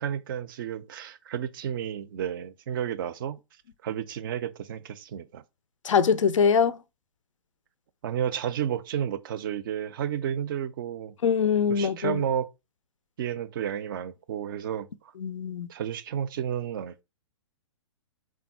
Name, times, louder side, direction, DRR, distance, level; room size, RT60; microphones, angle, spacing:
voice 1, 0.0-3.4 3.8-5.4 8.0-11.1 11.7-12.5 13.2-14.9 15.7-17.0, right 9 dB, 40° right, 0.4 m, -31 dB
voice 2, 5.8-6.8 11.2-12.2 15.2-15.7, left 6 dB, 70° left, 0.4 m, -23 dB
3.6 x 2.2 x 4.1 m
figure-of-eight pair, 120°, 17 cm